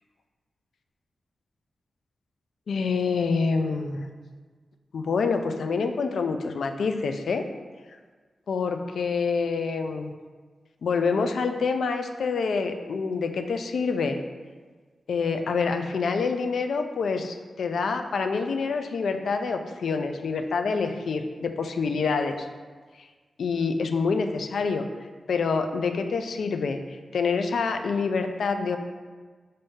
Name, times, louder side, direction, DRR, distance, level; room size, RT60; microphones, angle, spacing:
voice 1, 2.7-4.1 4.9-7.5 8.5-10.1 10.8-14.2 15.1-22.5 23.4-24.9 25.3-26.8 27.1-28.8, left 4 dB, 80° left, 7 dB, 0.3 m, -26 dB
5.5 x 2.6 x 3.5 m, 1.4 s
cardioid pair, 55°, 0 cm